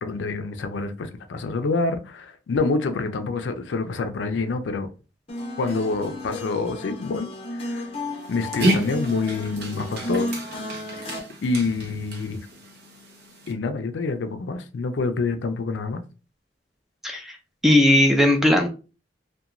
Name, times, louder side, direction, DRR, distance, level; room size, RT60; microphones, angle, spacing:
voice 1, 0.0-4.9 5.6-7.9 8.3-10.3 10.9-12.4 13.5-16.0, left 3 dB, 70° left, 0.4 m, -27 dB
sound 1, 5.3-11.2, left 1 dB, 30° left, 0.7 m, -33 dB
Dog, 8.2-13.5, right 1 dB, 60° right, 0.7 m, -30 dB
voice 2, 17.0-17.4 17.6-18.7, left 1 dB, ahead, 0.4 m, -17 dB
2.8 x 2.2 x 2.4 m
head